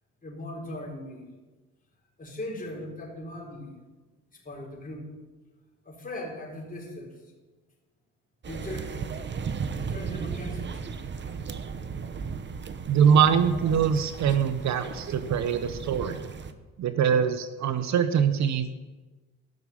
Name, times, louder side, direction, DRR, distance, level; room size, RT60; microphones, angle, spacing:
voice 1, 0.2-1.2 2.2-3.8 4.3-5.1 5.8-7.2 8.4-8.9 9.7-10.8 15.0-15.4, left 1 dB, 30° left, -4 dB, 4.2 m, -39 dB
sound 1, 8.4-16.5, right 6 dB, 35° right, 0.9 m, -36 dB
voice 2, 12.9-16.3 16.8-18.7, right 7 dB, 65° right, 11 dB, 0.8 m, -23 dB
13.5 x 6.3 x 7.3 m, 1.2 s
cardioid pair, 90°, 30 cm